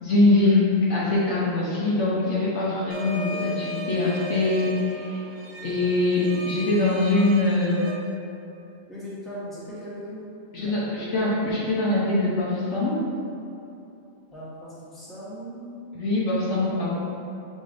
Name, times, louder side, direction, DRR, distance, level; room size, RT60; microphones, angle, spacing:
voice 1, 0.0-5.2 5.6-7.9 10.5-13.0 15.9-16.9, left 2 dB, 65° left, -6 dB, 1.0 m, -23 dB
sound 1, 2.9-7.9, right 1 dB, 80° right, 1.0 m, -37 dB
voice 2, 8.9-10.2 10.6-11.2 14.3-15.7 16.7-16.9, equal, ahead, -11 dB, 0.9 m, -39 dB
6.2 x 2.8 x 2.4 m, 2.8 s
omnidirectional pair, 1.4 m